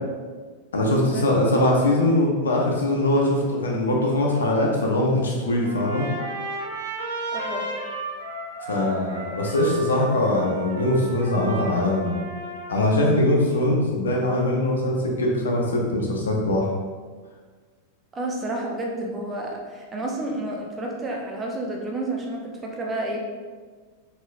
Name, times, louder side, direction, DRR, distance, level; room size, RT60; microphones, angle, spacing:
voice 1, 0.7-6.1 8.7-12.3 12.7-16.7, left 1 dB, 70° left, -1 dB, 0.8 m, -22 dB
Trumpet, 5.6-12.9, right 2 dB, 65° right, 1.1 m, -34 dB
voice 2, 7.3-7.7 18.1-23.2, right 1 dB, 20° right, 0 dB, 0.7 m, -30 dB
4.0 x 4.0 x 2.5 m, 1.5 s
figure-of-eight pair, 90°, 0 cm